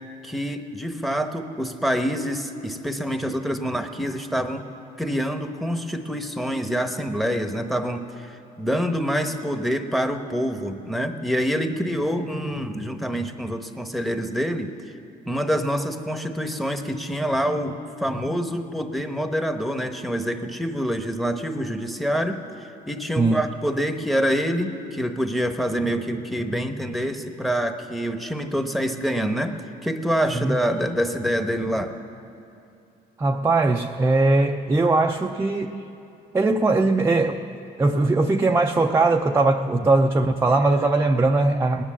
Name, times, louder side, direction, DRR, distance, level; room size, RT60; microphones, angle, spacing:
voice 1, 0.2-4.7 5.0-14.7 15.3-29.6 29.8-31.9, equal, ahead, 7 dB, 1.0 m, -26 dB
voice 2, 33.2-35.8 36.3-37.4 37.8-41.8, right 2 dB, 15° right, 4 dB, 0.5 m, -20 dB
19.0 x 10.0 x 7.3 m, 2.6 s
cardioid pair, 110°, 17 cm